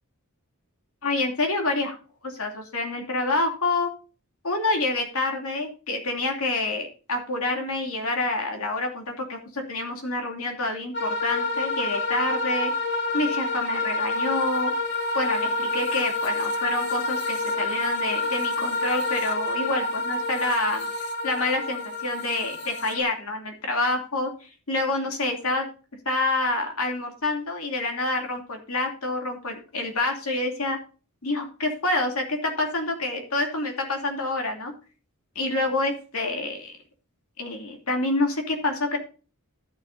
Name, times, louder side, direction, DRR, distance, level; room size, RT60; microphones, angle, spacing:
voice 1, 1.0-2.0 2.2-3.9 4.4-12.7 13.1-14.7 15.1-20.9 21.2-25.6 26.0-30.8 31.2-34.7 35.3-36.7 37.4-39.0, left 2 dB, 70° left, 3 dB, 2.7 m, -27 dB
sound 1, 10.9-23.0, left 2 dB, 50° left, 1.9 m, -28 dB
13.0 x 8.6 x 2.7 m, 0.36 s
head